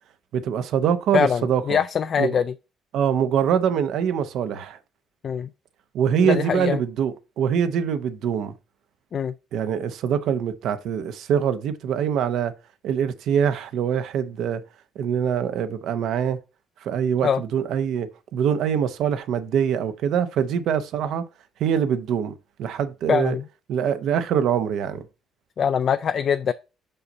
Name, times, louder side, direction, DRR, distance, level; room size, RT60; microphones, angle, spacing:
voice 1, 0.3-1.8 2.2-2.4 2.9-4.8 5.9-8.5 9.5-12.5 12.8-14.6 15.0-16.4 16.8-21.2 21.6-23.4 23.7-25.0, right 8 dB, 75° right, 0.7 m, -24 dB
voice 2, 1.1-2.5 5.2-5.5 6.2-6.8 9.1-9.3 17.2-17.4 23.1-23.4 25.6-26.5, left 7 dB, 50° left, 0.3 m, -23 dB
5.5 x 5.5 x 3.9 m
cardioid pair, 100°, 0 cm